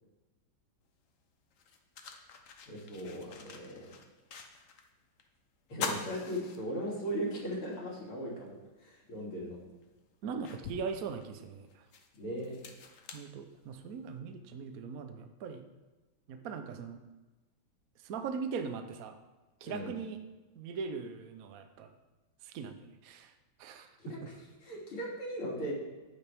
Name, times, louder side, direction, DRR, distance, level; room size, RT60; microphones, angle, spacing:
sound 1, 0.9-1.0 1.5-4.9 5.2-5.3 5.7-7.2 7.6-7.7 9.1-9.2 9.8-14.0, left 5 dB, 55° left, 1.0 m, -44 dB
voice 1, 2.7-3.9 5.7-8.5 8.8-9.6 12.1-12.5 19.6-19.9 24.0-24.4 24.6-25.7, equal, 85° left, -5 dB, 3.7 m, -38 dB
voice 2, 10.2-11.8 13.1-15.6 16.3-17.0 18.0-19.2 19.6-20.2 20.5-21.9 22.4-23.3 23.6-24.3, right 5 dB, 55° right, 7 dB, 1.0 m, -40 dB
12.5 x 8.5 x 3.5 m, 1.2 s
omnidirectional pair, 2.3 m